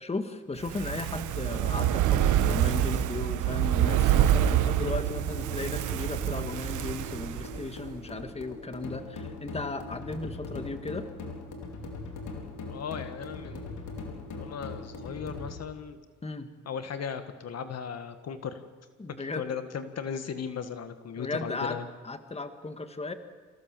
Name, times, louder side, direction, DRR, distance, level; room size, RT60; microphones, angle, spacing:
voice 1, 0.0-11.1 16.2-16.5 19.0-19.5 21.2-21.8 22.0-23.1, left 3 dB, 20° left, 8 dB, 1.9 m, -36 dB
Fire, 0.6-7.9 8.2-8.3, right 11 dB, 80° right, 1.2 m, -26 dB
sound 1, 3.8-15.6, left 3 dB, 75° left, 4.6 m, -41 dB
voice 2, 12.7-14.0 14.3-16.0 16.6-18.6 19.2-21.8, left 7 dB, 55° left, 9 dB, 1.7 m, -37 dB
27.0 x 16.0 x 7.6 m, 1.5 s
cardioid pair, 90°, 30 cm